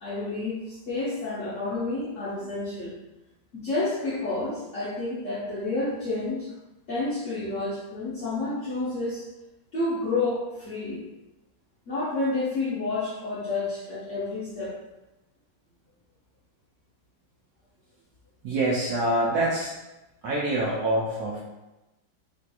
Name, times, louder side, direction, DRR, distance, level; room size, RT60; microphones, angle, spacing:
voice 1, 0.0-3.0 3.5-6.5 6.9-9.2 9.7-11.1 11.9-14.8, left 2 dB, 65° left, -9 dB, 0.8 m, -30 dB
voice 2, 18.4-19.7 20.2-21.4, right 1 dB, 75° right, -5 dB, 0.9 m, -25 dB
3.3 x 2.7 x 2.3 m, 1.0 s
omnidirectional pair, 2.1 m